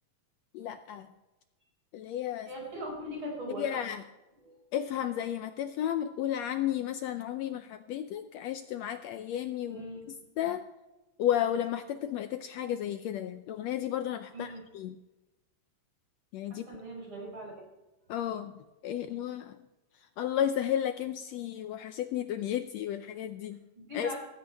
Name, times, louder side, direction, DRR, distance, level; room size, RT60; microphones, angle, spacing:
voice 1, 0.5-1.1 1.9-2.5 3.6-4.0 4.7-9.8 10.4-10.6 11.2-14.9 16.3-16.7 18.1-18.5 18.8-19.6 20.2-23.6 23.9-24.1, left 10 dB, 75° left, 9 dB, 1.7 m, -33 dB
voice 2, 2.4-3.8 4.4-4.6 9.7-10.1 14.3-14.6 16.5-17.5 23.8-24.2, equal, 45° right, -2 dB, 6.4 m, -40 dB
19.0 x 15.0 x 3.5 m, 1.1 s
omnidirectional pair, 3.4 m